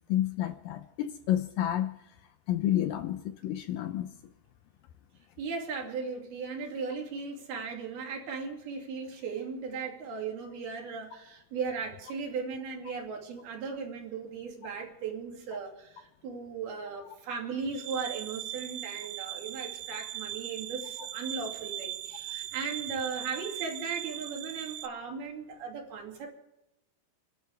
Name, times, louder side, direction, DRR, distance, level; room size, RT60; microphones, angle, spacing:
voice 1, 0.1-2.0 2.5-4.1, left 12 dB, 75° left, 8 dB, 2.2 m, -30 dB
voice 2, 5.4-26.3, right 5 dB, 70° right, 1 dB, 4.4 m, -37 dB
sound 1, 17.7-24.9, right 13 dB, 90° right, 3.0 m, -39 dB
29.5 x 12.5 x 3.5 m, 0.92 s
omnidirectional pair, 4.7 m